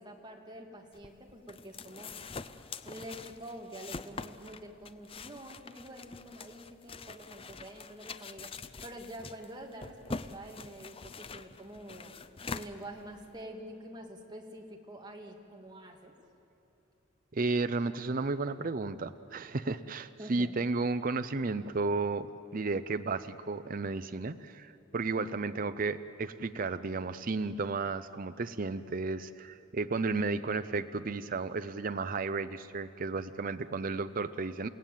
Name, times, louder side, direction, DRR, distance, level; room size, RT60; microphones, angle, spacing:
voice 1, 0.0-2.1 2.8-12.1 12.5-16.1 20.2-20.6, right 1 dB, 20° right, 1 dB, 2.4 m, -47 dB
sound 1, 0.9-13.4, left 4 dB, 30° left, 0.6 m, -44 dB
voice 2, 17.3-34.7, right 3 dB, 45° right, 11 dB, 0.6 m, -33 dB
29.0 x 17.0 x 9.2 m, 2.7 s
head